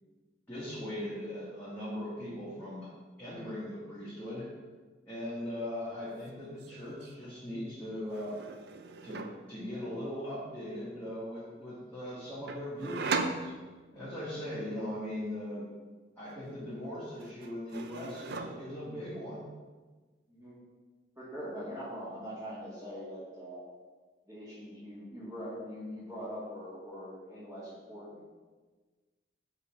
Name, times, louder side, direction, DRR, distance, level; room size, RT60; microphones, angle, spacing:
voice 1, 0.5-2.9 3.2-4.5 5.0-8.4 9.0-13.5 13.9-15.7 16.2-19.5, left 1 dB, 10° left, -12 dB, 1.6 m, -39 dB
sound 1, 5.8-6.1 6.3-7.1 8.1-9.5 12.5-14.1 16.3-16.9 17.2-18.9, right 4 dB, 60° right, 0.4 m, -39 dB
voice 2, 20.3-20.6 21.2-23.6 24.3-28.2, equal, 15° right, -13 dB, 1.8 m, -42 dB
5.1 x 4.1 x 5.2 m, 1.3 s
head